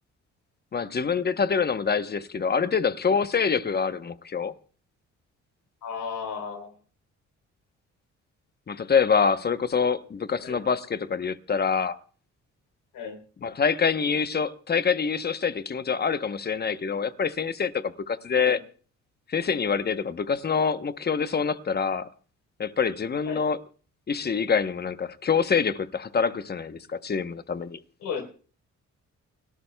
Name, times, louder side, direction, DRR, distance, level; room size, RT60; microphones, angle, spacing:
voice 1, 0.7-4.5 8.7-12.0 13.4-18.6 19.3-22.1 22.6-23.6 24.1-27.8, left 6 dB, 35° left, 0.9 m, -25 dB
voice 2, 5.8-6.7 10.4-10.6 12.9-13.2 18.4-18.6 23.3-23.4 28.0-28.2, left 6 dB, 75° left, 3.8 m, -34 dB
29.5 x 13.0 x 2.3 m
cardioid pair, 90°, 30 cm